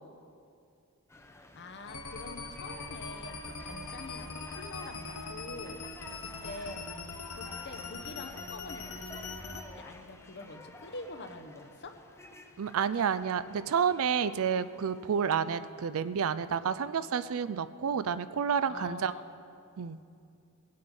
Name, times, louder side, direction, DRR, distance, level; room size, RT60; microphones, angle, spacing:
sound 1, 1.1-16.2 16.8-16.9, left 2 dB, 10° left, 0.7 m, -52 dB
voice 1, 1.5-5.8 6.2-6.9 7.3-12.0 18.7-19.3, left 2 dB, 50° left, 7 dB, 0.9 m, -45 dB
sound 2, 1.9-9.6, left 3 dB, 75° left, 1.1 m, -42 dB
voice 2, 12.6-19.1 19.8-20.0, right 7 dB, 65° right, 14 dB, 0.4 m, -30 dB
19.5 x 7.7 x 5.3 m, 2.4 s
head